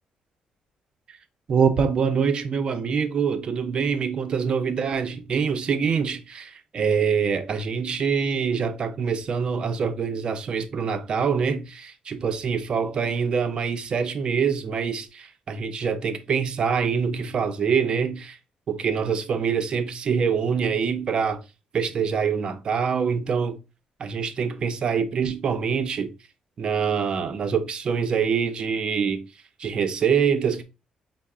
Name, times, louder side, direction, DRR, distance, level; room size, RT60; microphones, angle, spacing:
voice 1, 1.5-18.4 18.7-21.4 21.7-23.6 24.0-26.1 26.6-29.2 29.6-30.6, right 6 dB, 40° right, 0.5 m, -25 dB
5.4 x 2.0 x 3.4 m
cardioid pair, 150°, 2 cm